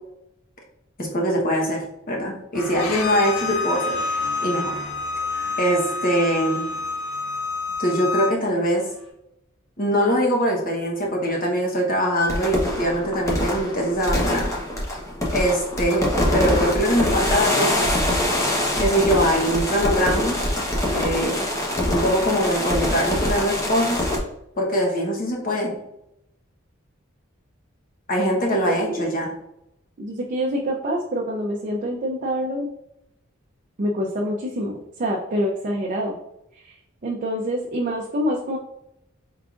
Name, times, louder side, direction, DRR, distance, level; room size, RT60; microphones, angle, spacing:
voice 1, 1.0-4.0 4.4-4.9 5.6-6.6 7.8-8.8 9.8-14.5 15.3-16.1 16.3-17.9 18.8-20.5 20.8-21.4 21.9-24.0 24.6-25.7 28.1-29.3, equal, 45° left, -1 dB, 1.0 m, -22 dB
sound 1, 2.5-8.3 8.6-9.1, equal, ahead, 1.3 m, -40 dB
Bowed string instrument, 2.8-8.3, left 3 dB, 85° left, 0.4 m, -28 dB
sound 2, 12.3-24.2, left 1 dB, 15° left, 0.8 m, -24 dB
voice 2, 30.0-32.7 33.8-36.1 36.6-36.8 37.0-38.6, equal, 40° right, -1 dB, 0.5 m, -26 dB
4.6 x 3.6 x 2.4 m, 0.83 s
head